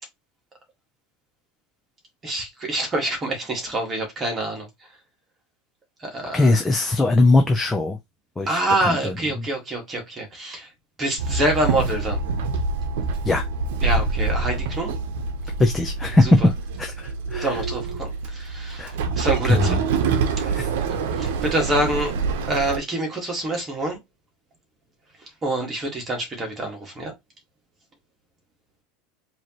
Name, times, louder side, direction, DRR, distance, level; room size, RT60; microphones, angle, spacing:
voice 1, 2.2-4.9 6.0-6.5 8.5-10.7 11.0-12.3 13.8-15.0 16.2-16.5 17.4-19.8 21.1-22.1 22.5-24.0 25.2-27.1, right 1 dB, 15° right, 1.7 m, -26 dB
voice 2, 6.3-8.0 8.4-9.1 13.2-13.4 15.6-16.3 16.8-17.6 18.8-18.9 19.5-19.8 20.4-20.7, left 2 dB, 10° left, 0.5 m, -21 dB
Walk footsteps / Chatter / Hiss, 11.2-22.8, right 4 dB, 75° right, 0.8 m, -26 dB
4.8 x 2.9 x 3.0 m
supercardioid pair, 155°, 0 cm